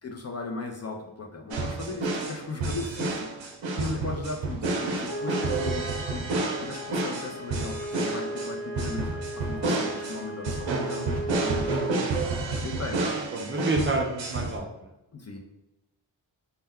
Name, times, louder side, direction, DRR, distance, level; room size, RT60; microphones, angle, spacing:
voice 1, 0.0-3.3 3.8-11.8 12.5-13.1 15.1-15.4, left 3 dB, 35° left, 1 dB, 0.5 m, -37 dB
sound 1, 1.5-14.6, right 3 dB, 75° right, 0.6 m, -30 dB
sound 2, 5.1-11.9, right 1 dB, 75° left, 0.9 m, -36 dB
voice 2, 12.5-12.9 13.3-14.9, right 2 dB, 25° right, 1 dB, 0.5 m, -29 dB
2.2 x 2.1 x 3.5 m, 0.92 s
cardioid pair, 40°, 46 cm